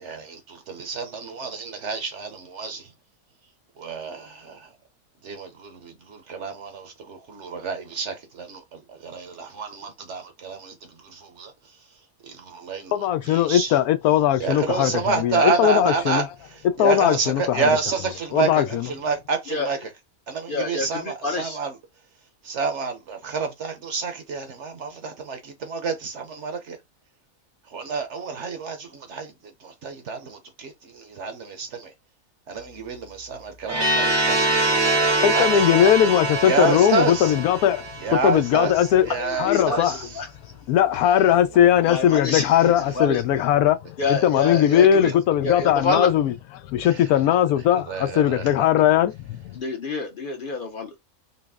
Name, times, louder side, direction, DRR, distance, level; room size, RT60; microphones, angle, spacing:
voice 1, 0.0-2.8 3.8-4.6 5.2-8.6 9.0-10.7 11.2-11.5 12.3-12.9 13.3-13.7 14.4-16.2 16.8-19.8 20.3-21.7 22.5-26.8 27.7-29.3 29.6-31.9 32.5-35.1 35.3-35.5 36.4-37.3 38.0-38.7 39.1-40.0 42.6-42.7 47.9-48.4, right 4 dB, 60° right, 1.0 m, -28 dB
voice 2, 12.9-16.3 16.8-17.8 18.3-18.9 35.2-37.8 38.1-40.0 40.7-46.3 46.7-49.6, left 10 dB, 90° left, 1.1 m, -19 dB
voice 3, 20.5-21.6 39.2-40.3 41.9-42.5 42.9-43.2 44.0-45.1 45.4-46.1 49.6-51.0, left 4 dB, 50° left, 0.7 m, -27 dB
sound 1, 33.7-38.5, right 2 dB, 30° right, 0.5 m, -23 dB
4.0 x 2.0 x 3.5 m
omnidirectional pair, 1.5 m